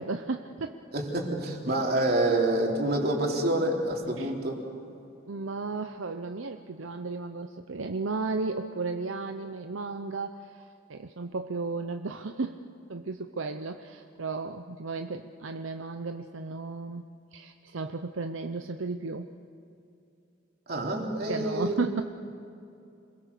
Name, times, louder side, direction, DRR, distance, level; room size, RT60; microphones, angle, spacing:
voice 1, 0.0-0.8 4.2-4.3 5.3-10.6 10.9-12.6 12.9-17.0 17.3-19.3 21.3-22.0, right 3 dB, 85° right, 7 dB, 0.8 m, -34 dB
voice 2, 0.9-4.6 20.7-21.8, right 1 dB, 55° right, 0 dB, 3.4 m, -27 dB
27.0 x 22.0 x 6.8 m, 2.6 s
head